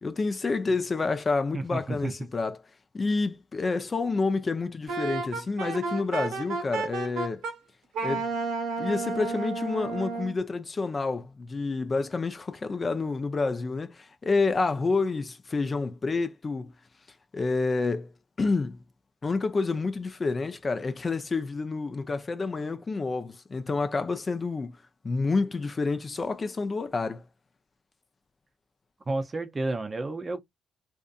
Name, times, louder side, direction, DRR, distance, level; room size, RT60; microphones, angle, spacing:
voice 1, 0.0-2.6 2.9-7.4 8.0-8.3 8.8-16.7 17.3-18.1 18.4-18.8 19.2-24.7 25.0-27.2, left 3 dB, 30° left, 0.4 m, -28 dB
voice 2, 1.5-2.3 29.1-30.4, right 2 dB, 30° right, 0.6 m, -31 dB
Wind instrument woodwind instrument, 4.9-7.5 7.9-10.3, right 4 dB, 85° right, 1.1 m, -32 dB
2.5 x 2.5 x 2.3 m
cardioid pair, 90°, 0 cm